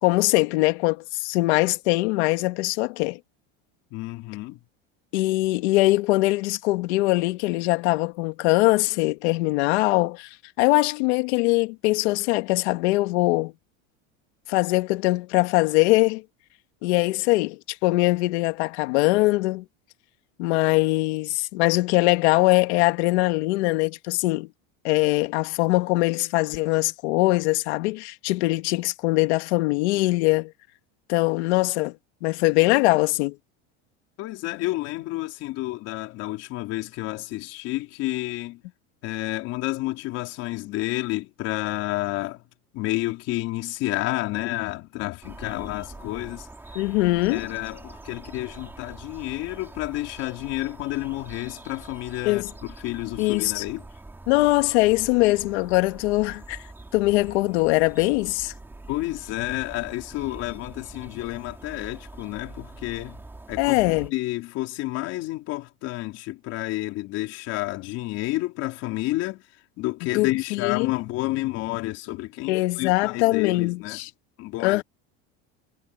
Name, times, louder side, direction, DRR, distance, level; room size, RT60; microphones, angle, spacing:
voice 1, 0.0-3.2 5.1-13.5 14.5-16.2 16.8-19.7 20.4-24.5 24.8-30.5 31.1-32.0 32.2-33.4 46.8-47.5 52.2-52.5 53.2-53.7 54.3-56.7 56.9-58.5 63.6-64.1 70.1-70.9 72.5-74.1 74.6-74.8, left 21 dB, 80° left, 2.1 m, -22 dB
voice 2, 3.9-4.6 34.2-38.6 39.0-42.4 42.7-46.5 47.3-53.8 58.9-63.2 63.5-69.4 69.8-74.0 74.4-74.8, left 18 dB, 50° left, 3.6 m, -30 dB
sound 1, 45.2-64.1, right 2 dB, 5° right, 2.6 m, -44 dB
cardioid pair, 165°, 33 cm